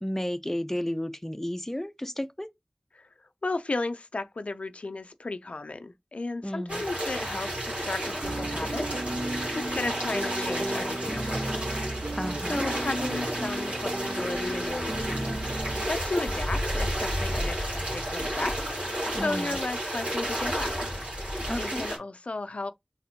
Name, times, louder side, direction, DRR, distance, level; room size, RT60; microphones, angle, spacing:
voice 1, 0.0-2.5 6.4-6.8 12.2-12.6 19.1-19.6 21.5-21.9, left 1 dB, 15° left, 0.5 m, -32 dB
voice 2, 3.4-11.7 12.5-18.6 19.1-20.7 21.6-22.7, left 2 dB, 90° left, 0.4 m, -34 dB
sound 1, 6.7-22.0, equal, 80° right, 2.8 m, -31 dB
sound 2, 8.2-15.9, right 1 dB, 60° right, 0.6 m, -34 dB
4.2 x 4.0 x 2.7 m
wide cardioid pair, 40°, 2 cm